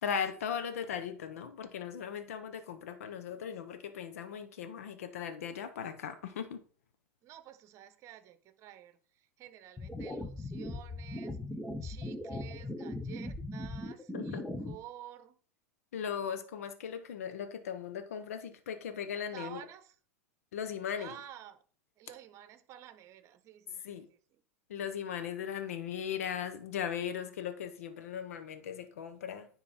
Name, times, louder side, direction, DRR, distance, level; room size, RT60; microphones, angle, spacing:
voice 1, 0.0-6.6 14.1-14.5 15.9-19.6 20.5-21.1 23.7-24.1 24.7-29.5, left 8 dB, 80° left, 1.0 m, -38 dB
voice 2, 7.2-9.0 9.4-11.4 11.8-15.3 19.3-19.8 21.0-21.6 22.0-24.0, right 11 dB, 40° right, 1.0 m, -51 dB
sound 1, 9.8-14.8, left 1 dB, 5° left, 0.9 m, -39 dB
9.8 x 4.1 x 4.3 m
hypercardioid pair, 110°, 8 cm